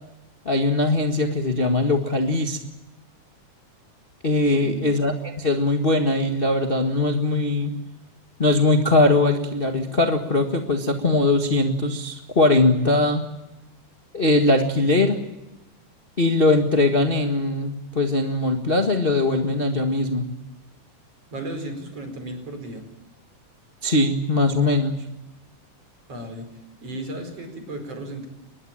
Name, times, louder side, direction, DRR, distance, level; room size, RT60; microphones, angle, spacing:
voice 1, 0.4-2.6 4.2-7.7 8.4-13.2 14.1-15.2 16.2-20.3 23.8-24.9, left 2 dB, 30° left, 4 dB, 1.1 m, -21 dB
voice 2, 4.5-4.9 21.3-22.8 26.1-28.3, right 1 dB, 45° right, 6 dB, 5.7 m, -35 dB
23.5 x 21.0 x 8.8 m, 1.0 s
omnidirectional pair, 3.7 m